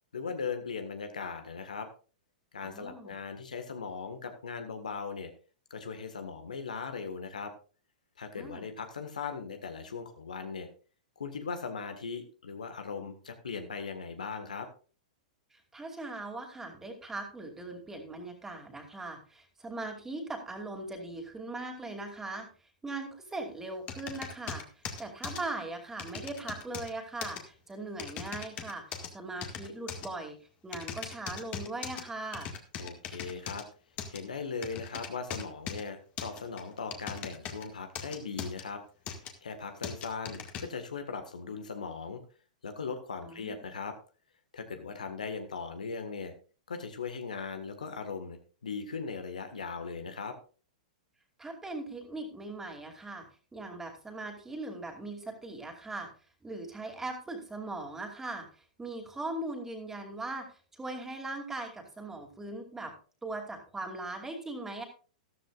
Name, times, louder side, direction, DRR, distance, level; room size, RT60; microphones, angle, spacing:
voice 1, 0.1-1.9 2.5-5.3 5.7-7.5 8.2-10.7 11.2-14.7 32.8-33.6 34.1-38.8 39.4-42.2 42.6-43.9 44.5-46.3 46.7-50.4, left 5 dB, 75° left, 7 dB, 1.6 m, -39 dB
voice 2, 2.6-3.2 8.4-8.7 15.5-22.5 22.8-24.7 25.0-30.4 30.6-32.5 43.2-43.6 51.4-56.1 56.4-62.9 63.2-64.8, right 2 dB, 10° right, 3 dB, 2.6 m, -40 dB
sound 1, 23.9-25.4 26.0-26.9 27.2-27.4 28.0-29.1 29.4-30.1 30.7-32.0 32.3-33.6 34.0-34.2 34.6-35.8 36.2-37.7 38.0-38.6 39.1-39.3 39.8-40.6, left 7 dB, 35° left, 1.9 m, -39 dB
13.5 x 13.5 x 2.5 m, 0.38 s
figure-of-eight pair, 105°, 4 cm